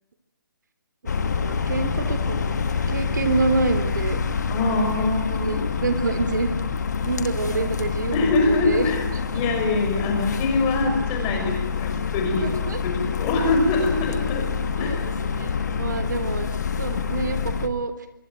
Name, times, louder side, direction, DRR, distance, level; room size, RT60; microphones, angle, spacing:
voice 1, 1.0-4.2 4.9-6.5 7.0-9.2 12.4-12.8 14.7-16.5 16.8-17.9, right 4 dB, 55° right, 11 dB, 3.6 m, -28 dB
sound 1, 1.1-17.7, left 6 dB, 50° left, 2.5 m, -27 dB
voice 2, 4.5-5.7 8.1-9.1 9.3-12.5 12.8-14.5 14.8-15.0, left 3 dB, 15° left, 3 dB, 5.5 m, -24 dB
25.0 x 25.0 x 9.1 m, 0.79 s
hypercardioid pair, 175°, 11 cm